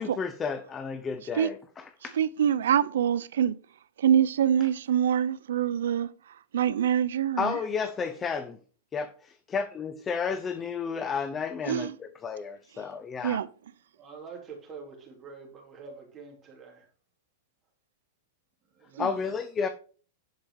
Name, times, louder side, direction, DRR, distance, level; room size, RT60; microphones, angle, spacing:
voice 1, 0.0-2.2 7.4-8.6 8.9-13.4 19.0-19.7, left 6 dB, 15° left, 0.7 m, -32 dB
voice 2, 2.2-3.5 4.0-6.1 6.5-7.6 11.7-12.0 13.2-13.5 19.0-19.1, right 9 dB, 90° right, 0.6 m, -25 dB
voice 3, 13.9-16.9 18.7-19.3, right 5 dB, 20° right, 2.9 m, -46 dB
10.5 x 4.9 x 4.7 m
supercardioid pair, 160°, 0 cm